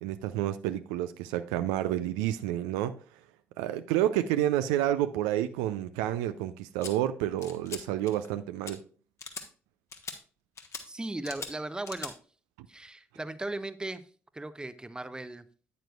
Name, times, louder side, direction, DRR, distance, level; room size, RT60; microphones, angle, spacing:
voice 1, 0.0-3.0 3.6-8.8, right 12 dB, 70° right, 0.3 m, -29 dB
sound 1, 6.8-6.9 7.4-7.8 8.1-8.3 8.6-8.7 9.2-9.5 9.9-10.2 10.6-10.8 11.2-11.5 11.9-12.1, left 5 dB, 45° left, 1.2 m, -40 dB
voice 2, 10.9-12.1 12.7-14.0 14.3-15.5, right 2 dB, 10° right, 0.6 m, -37 dB
9.3 x 8.9 x 2.3 m
figure-of-eight pair, 45°, 7 cm